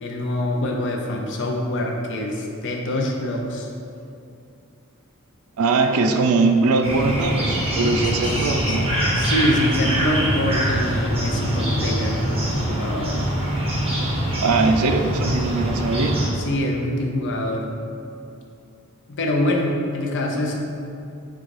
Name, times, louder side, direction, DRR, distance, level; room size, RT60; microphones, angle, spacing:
voice 1, 0.0-3.7 8.4-8.8 9.1-13.1 16.4-17.7 19.1-20.6, left 1 dB, 55° left, 1 dB, 0.5 m, -25 dB
voice 2, 5.6-8.9 14.4-16.2, right 3 dB, 85° right, 6 dB, 0.4 m, -21 dB
sound 1, 6.8-16.3, right 1 dB, 25° right, 0.8 m, -23 dB
6.0 x 2.3 x 3.1 m, 2.5 s
head